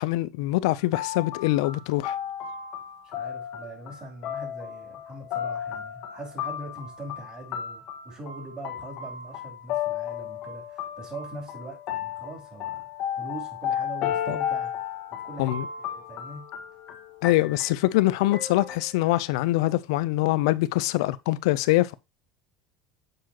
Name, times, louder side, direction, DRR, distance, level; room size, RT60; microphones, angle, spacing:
voice 1, 0.0-2.2 15.4-15.7 17.2-21.9, left 18 dB, 80° left, 0.5 m, -24 dB
sound 1, 0.8-19.1, left 9 dB, 60° left, 1.6 m, -34 dB
voice 2, 3.0-12.9 13.2-16.5, right 2 dB, 30° right, 3.7 m, -42 dB
7.6 x 4.7 x 2.9 m
supercardioid pair, 120°, 3 cm